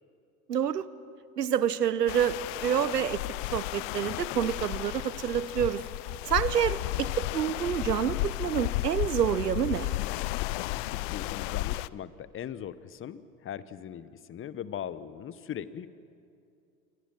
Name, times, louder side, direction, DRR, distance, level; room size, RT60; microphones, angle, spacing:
voice 1, 0.5-0.9 1.4-3.2 3.5-5.8 6.3-9.9, right 9 dB, 90° right, 17 dB, 1.0 m, -28 dB
sound 1, 2.1-11.9, left 19 dB, 50° left, 0.6 m, -33 dB
voice 2, 10.9-15.9, left 9 dB, 25° left, 16 dB, 1.0 m, -39 dB
28.0 x 24.0 x 6.1 m, 2.5 s
hypercardioid pair, 90°, 47 cm